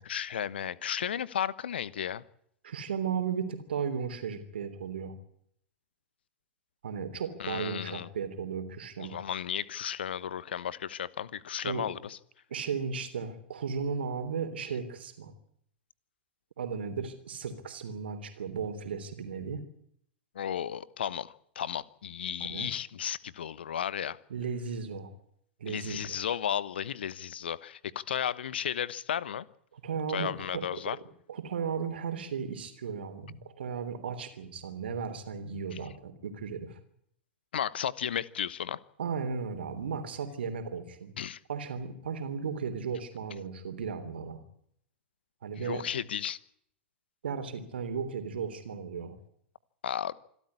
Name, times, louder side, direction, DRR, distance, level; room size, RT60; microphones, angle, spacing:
voice 1, 0.0-2.2 7.4-8.1 9.0-12.2 20.3-24.2 25.6-29.4 30.1-31.0 37.5-38.8 41.2-41.4 45.6-46.4 49.8-50.1, left 9 dB, 65° left, 1.0 m, -34 dB
voice 2, 2.6-5.1 6.8-9.2 11.6-11.8 12.5-15.3 16.6-19.6 22.5-22.7 24.3-25.1 25.6-26.2 29.7-30.6 31.3-36.8 39.0-41.1 41.5-44.4 45.4-45.8 47.2-49.2, right 6 dB, 65° right, 3.3 m, -35 dB
26.5 x 13.0 x 9.7 m
figure-of-eight pair, 95°, 6 cm